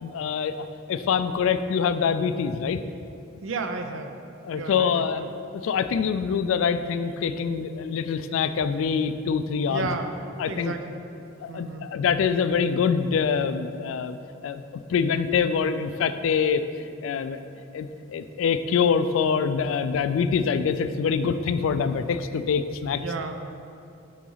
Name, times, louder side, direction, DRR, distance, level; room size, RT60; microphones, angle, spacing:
voice 1, 0.0-2.8 4.4-9.9 10.4-10.7 11.4-14.2 14.4-17.4 17.7-23.0, left 6 dB, 80° left, 11 dB, 0.3 m, -25 dB
voice 2, 3.4-4.1 4.5-5.3 9.7-10.1 10.5-11.0 11.5-11.9 22.9-23.4, right 4 dB, 75° right, 7 dB, 0.5 m, -33 dB
7.5 x 4.0 x 3.9 m, 2.6 s
head